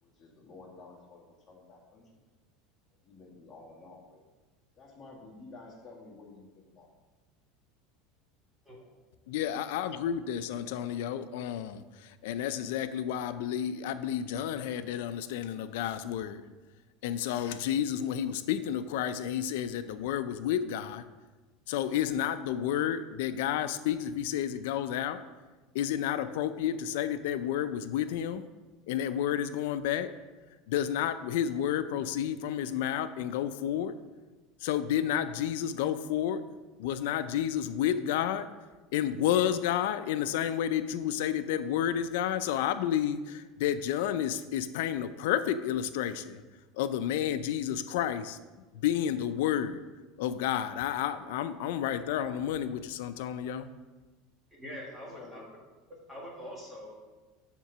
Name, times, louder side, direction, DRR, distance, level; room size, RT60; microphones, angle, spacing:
voice 1, 0.0-2.0 3.0-4.2 4.7-6.9 55.2-55.5, left 3 dB, 20° left, -3 dB, 1.7 m, -51 dB
voice 2, 9.3-16.4 17.0-21.1 21.7-25.2 25.7-28.4 28.9-30.1 30.7-34.0 34.6-36.5 36.8-38.5 38.9-46.4 46.8-48.4 48.7-49.8 50.2-53.7, left 10 dB, 75° left, 11 dB, 0.4 m, -31 dB
voice 3, 54.5-55.4 56.1-57.1, equal, 10° right, -4 dB, 1.8 m, -44 dB
7.2 x 3.7 x 6.0 m, 1.2 s
supercardioid pair, 150°, 0 cm